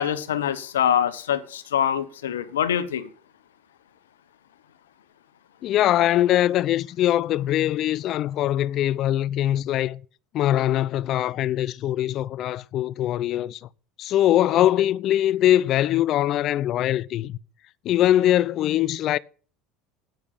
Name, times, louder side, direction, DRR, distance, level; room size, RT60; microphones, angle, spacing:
voice 1, 0.0-3.1, left 9 dB, 75° left, 1.1 m, -24 dB
voice 2, 5.6-10.0 10.3-13.6 14.0-17.4 17.8-19.2, left 13 dB, 50° left, 0.5 m, -22 dB
9.6 x 9.1 x 7.4 m
figure-of-eight pair, 70°, 0 cm